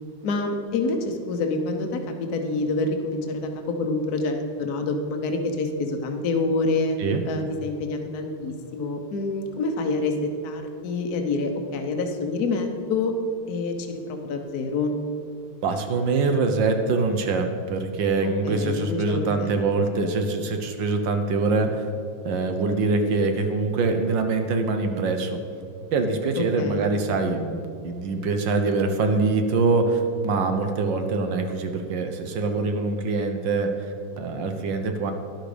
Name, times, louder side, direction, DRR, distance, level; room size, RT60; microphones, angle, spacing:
voice 1, 0.2-7.0 7.3-13.1 13.5-14.9 18.2-19.5 26.4-26.9, left 3 dB, 55° left, 4 dB, 1.5 m, -27 dB
voice 2, 15.6-21.9 22.2-25.4 25.9-35.1, right 3 dB, 65° right, 6 dB, 1.6 m, -24 dB
12.0 x 11.5 x 5.1 m, 2.4 s
omnidirectional pair, 2.2 m